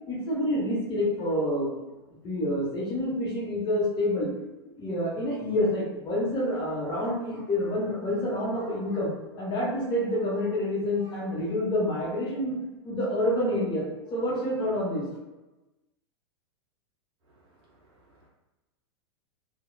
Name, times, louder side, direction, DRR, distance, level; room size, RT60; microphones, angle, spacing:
voice 1, 0.1-1.7 2.2-4.3 4.7-12.5 12.8-13.9 14.1-15.0, left 1 dB, 30° left, -5 dB, 1.0 m, -28 dB
voice 2, 17.3-18.3, right 2 dB, 40° right, -4 dB, 1.1 m, -62 dB
3.0 x 2.2 x 2.2 m, 1.1 s
hypercardioid pair, 100°, 14 cm